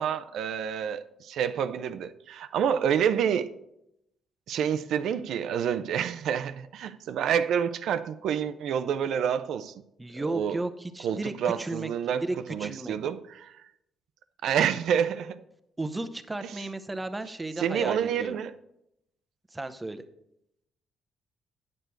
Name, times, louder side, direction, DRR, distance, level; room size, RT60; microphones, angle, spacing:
voice 1, 0.0-3.5 4.5-9.7 10.2-10.6 11.0-12.2 12.5-13.5 14.4-15.4 16.4-16.5 17.6-18.5, right 8 dB, 75° right, 0.5 m, -28 dB
voice 2, 10.0-11.9 12.2-12.9 15.8-18.3 19.5-20.0, right 2 dB, 15° right, 0.8 m, -34 dB
9.7 x 6.8 x 4.5 m
cardioid pair, 90°, 0 cm